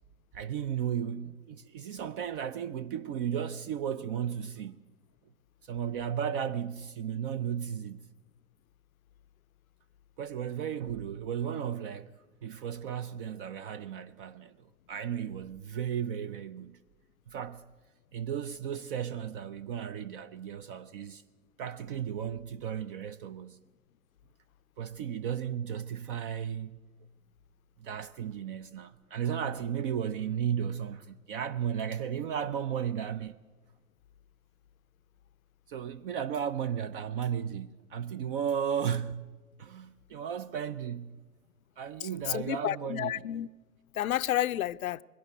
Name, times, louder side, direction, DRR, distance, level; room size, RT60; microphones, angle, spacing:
voice 1, 0.3-4.8 5.6-8.1 10.2-12.1 12.4-14.6 14.9-16.8 17.3-17.6 18.1-21.2 21.6-23.6 24.8-26.8 27.8-33.4 35.7-39.3 39.6-41.2 41.8-43.1, right 8 dB, 40° right, 0.6 m, -34 dB
voice 2, 42.0-43.5 43.9-45.0, left 12 dB, 65° left, 0.6 m, -31 dB
21.0 x 17.0 x 8.1 m
figure-of-eight pair, 110°, 44 cm